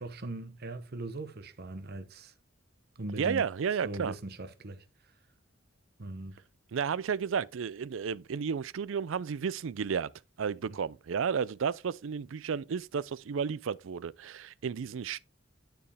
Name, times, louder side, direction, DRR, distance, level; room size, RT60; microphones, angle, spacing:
voice 1, 0.0-2.3 3.0-3.5 3.8-4.8 6.0-6.4 10.7-10.8, right 2 dB, 50° right, 0.9 m, -40 dB
voice 2, 3.2-4.1 6.7-10.1 10.4-15.2, right 6 dB, 65° right, 0.4 m, -32 dB
11.5 x 4.7 x 3.4 m
head